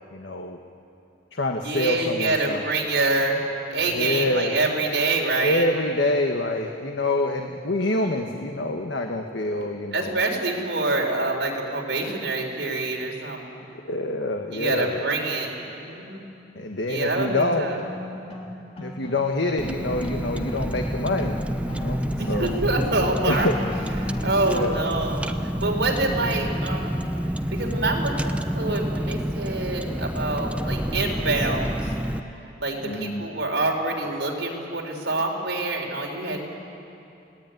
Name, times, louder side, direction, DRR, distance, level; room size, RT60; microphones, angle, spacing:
voice 1, 0.1-0.6 1.3-2.6 3.8-4.6 5.4-10.2 13.9-15.0 16.5-17.7 18.8-21.4 21.6-22.0 22.3-22.5 23.2-23.5 24.4-24.8 26.1-26.3 32.8-33.2, left 2 dB, 85° left, 3 dB, 1.4 m, -26 dB
voice 2, 1.6-5.7 7.8-8.3 9.9-13.6 14.5-16.3 16.8-17.8 22.2-23.5 24.0-25.3 25.6-27.1 27.5-31.9 32.6-36.4, right 2 dB, 75° right, 0 dB, 4.4 m, -26 dB
sound 1, 17.3-24.7, left 1 dB, 35° left, 3.5 m, -37 dB
Car, 19.6-32.2, equal, 5° right, 0.7 m, -28 dB
29.5 x 18.5 x 9.3 m, 2.8 s
head